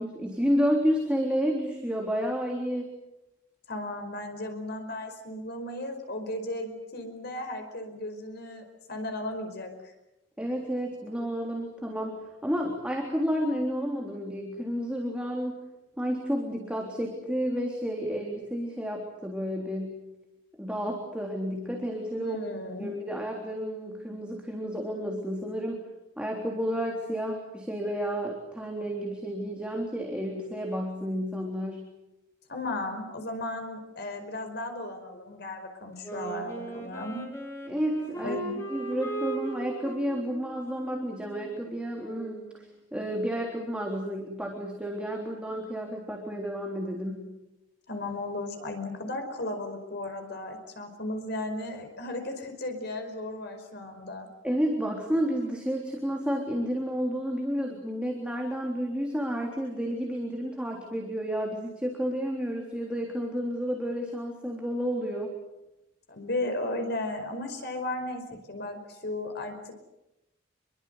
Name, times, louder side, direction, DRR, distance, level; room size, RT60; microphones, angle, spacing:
voice 1, 0.0-2.9 10.4-15.6 16.0-20.0 20.6-22.4 22.8-25.8 26.2-31.8 37.7-38.4 38.7-47.2 54.4-65.4, equal, 5° right, 0 dB, 3.6 m, -31 dB
voice 2, 3.7-9.9 22.1-22.9 32.5-37.2 38.2-38.5 47.9-54.3 66.1-69.7, left 1 dB, 55° left, 5 dB, 5.0 m, -35 dB
Wind instrument woodwind instrument, 36.0-42.6, right 3 dB, 15° left, 5.7 m, -38 dB
27.0 x 23.0 x 8.1 m, 0.93 s
head